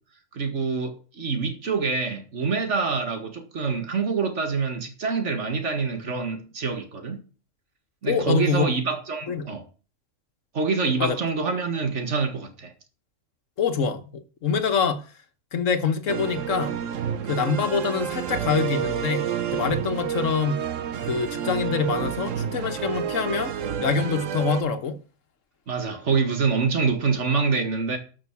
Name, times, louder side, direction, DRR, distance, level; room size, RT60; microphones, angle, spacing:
voice 1, 0.3-7.2 8.0-9.7 10.5-12.7 25.7-28.0, right 4 dB, 70° right, 2.1 m, -26 dB
voice 2, 8.1-8.6 9.3-9.5 11.0-11.1 13.6-14.0 14.4-15.0 15.5-16.8 17.3-20.7 21.1-23.5 23.8-25.0, left 5 dB, 80° left, 1.6 m, -25 dB
sound 1, 16.1-24.6, right 8 dB, 85° right, 1.3 m, -29 dB
12.5 x 6.1 x 6.1 m
omnidirectional pair, 1.3 m